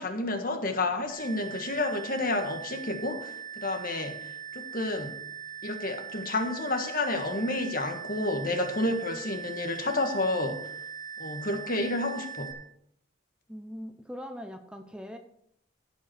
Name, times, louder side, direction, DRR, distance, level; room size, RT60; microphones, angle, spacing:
voice 1, 0.0-5.2 5.6-10.7 11.2-12.5, left 2 dB, 50° left, 5 dB, 1.5 m, -30 dB
sound 1, 1.1-12.5, right 8 dB, 85° left, 2.5 m, -41 dB
voice 2, 13.5-15.2, equal, 5° right, 6 dB, 0.7 m, -41 dB
15.0 x 5.3 x 6.2 m, 0.73 s
head